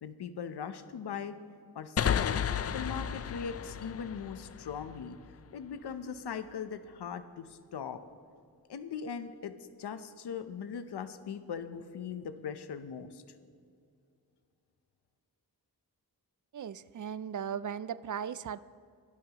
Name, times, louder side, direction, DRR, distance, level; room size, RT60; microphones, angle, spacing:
voice 1, 0.0-1.4 1.7-2.4 2.7-5.2 5.5-8.0 8.7-9.5 9.8-13.2, left 7 dB, 85° left, 11 dB, 0.8 m, -40 dB
sound 1, 2.0-5.4, left 8 dB, 40° left, 0.4 m, -33 dB
voice 2, 16.5-18.6, right 8 dB, 50° right, 17 dB, 0.5 m, -37 dB
24.0 x 12.5 x 3.0 m, 2.4 s
cardioid pair, 70°, 38 cm